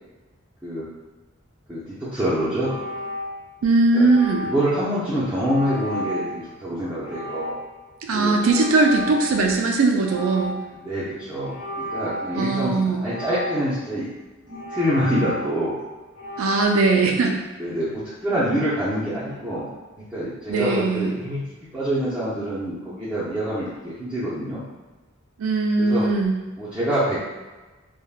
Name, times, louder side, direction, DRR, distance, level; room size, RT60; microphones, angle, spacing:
voice 1, 1.7-2.8 3.9-4.1 4.4-7.6 8.1-8.4 10.8-11.6 11.9-14.1 14.5-15.7 17.6-19.7 20.0-21.4 21.7-24.6 25.8-26.1 26.6-27.2, equal, 5° right, -12 dB, 0.5 m, -26 dB
sound 1, 2.6-3.6 4.0-4.8 5.4-6.4 7.0-7.9 8.4-9.7 10.0-10.8 11.4-12.5 13.0-13.9 14.5-15.7 16.1-16.7, equal, 75° left, 1.1 m, -33 dB
voice 2, 3.6-4.5 8.0-10.6 12.3-13.0 16.4-17.4 20.5-21.1 25.4-26.4, right 3 dB, 80° right, 2 dB, 0.4 m, -20 dB
3.3 x 2.1 x 2.3 m, 1.2 s
head